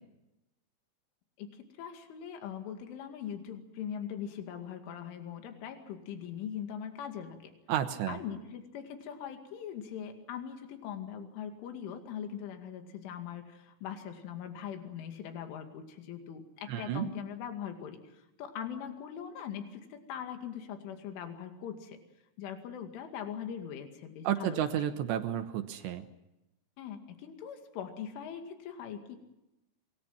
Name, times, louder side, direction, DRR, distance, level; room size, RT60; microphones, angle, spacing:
voice 1, 1.4-7.5 8.1-18.1 18.4-22.0 22.4-24.7 26.8-29.2, left 8 dB, 75° left, 5 dB, 4.7 m, -41 dB
voice 2, 7.7-8.2 16.7-17.1 24.2-26.0, right 10 dB, 75° right, 8 dB, 3.1 m, -31 dB
27.0 x 22.5 x 5.9 m, 0.93 s
omnidirectional pair, 5.7 m